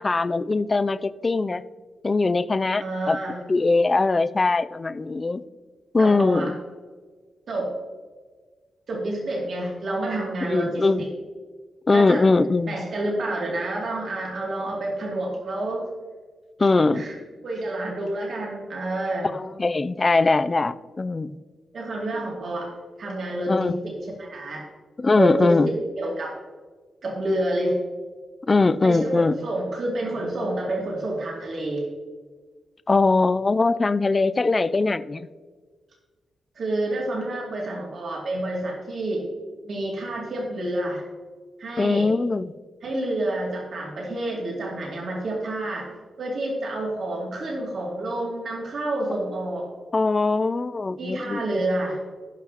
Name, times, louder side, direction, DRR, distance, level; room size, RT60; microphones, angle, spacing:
voice 1, 0.0-1.6 2.0-3.2 3.5-5.4 5.9-6.6 10.5-11.0 11.9-12.7 16.6-17.0 19.3-21.4 23.5-23.8 25.0-25.7 28.5-29.4 32.9-35.3 41.8-42.5 49.9-51.4, left 3 dB, 30° left, 13 dB, 0.4 m, -21 dB
voice 2, 2.8-3.4 6.0-6.5 7.5-7.7 8.9-11.1 11.9-12.2 12.7-15.9 16.9-17.2 17.4-19.3 21.7-22.7 23.0-24.6 25.1-25.6 26.0-26.4 27.0-27.8 28.8-31.9 36.5-39.2 39.6-41.0 41.6-42.1 42.8-45.9 46.2-49.7 51.0-52.0, right 1 dB, 60° right, -2 dB, 2.6 m, -28 dB
17.5 x 6.0 x 2.9 m, 1.5 s
wide cardioid pair, 115°, 0 cm